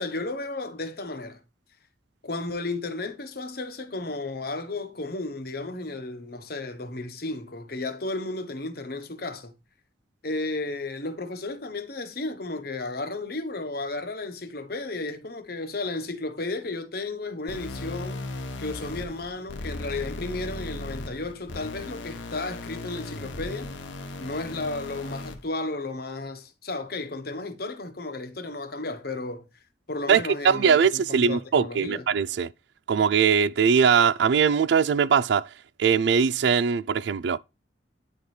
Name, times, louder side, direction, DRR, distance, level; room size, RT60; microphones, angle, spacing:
voice 1, 0.0-1.4 2.2-9.5 10.2-18.2 18.6-23.7 24.2-29.5 29.9-30.8 31.1-32.0, left 2 dB, 55° left, 1.1 m, -33 dB
sound 1, 17.5-25.5, left 2 dB, 85° left, 1.0 m, -37 dB
voice 2, 30.4-32.5 32.9-35.5 35.8-37.4, right 6 dB, 65° right, 0.3 m, -21 dB
9.4 x 4.3 x 3.2 m
head